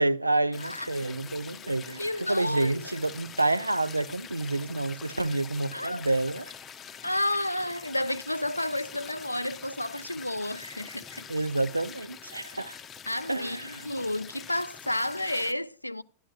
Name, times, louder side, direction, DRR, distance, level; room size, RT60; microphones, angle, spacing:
voice 1, 0.0-2.0 2.3-6.4 11.3-12.8 13.3-13.9, right 2 dB, 85° right, 0.3 m, -28 dB
sound 1, 0.5-15.5, left 7 dB, 25° left, 0.7 m, -45 dB
voice 2, 0.6-0.9 2.0-3.0 5.7-6.1 7.0-11.3 13.1-16.0, left 1 dB, 85° left, 0.3 m, -31 dB
11.5 x 11.0 x 2.3 m
figure-of-eight pair, 90°, 0 cm